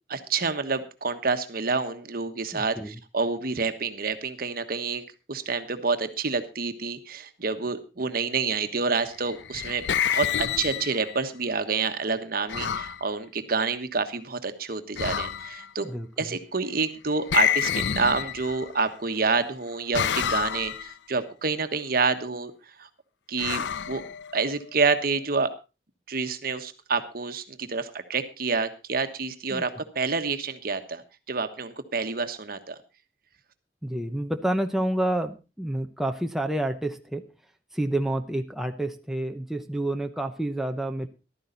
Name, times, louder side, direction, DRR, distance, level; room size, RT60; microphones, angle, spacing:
voice 1, 0.1-5.0 5.3-15.9 16.2-22.5 22.8-22.9 23.3-24.0 24.3-25.5 26.1-31.0 31.3-32.8, right 4 dB, 55° right, 9 dB, 1.3 m, -28 dB
voice 2, 2.5-2.9 15.9-16.4 29.5-29.6 33.8-37.2 37.7-41.1, right 1 dB, ahead, 5 dB, 0.8 m, -29 dB
sound 1, 9.2-11.2 12.5-13.0 15.0-15.7 17.3-18.8 19.9-20.9 23.4-24.6, left 8 dB, 85° left, 0.6 m, -28 dB
14.5 x 12.5 x 4.0 m, 0.30 s
head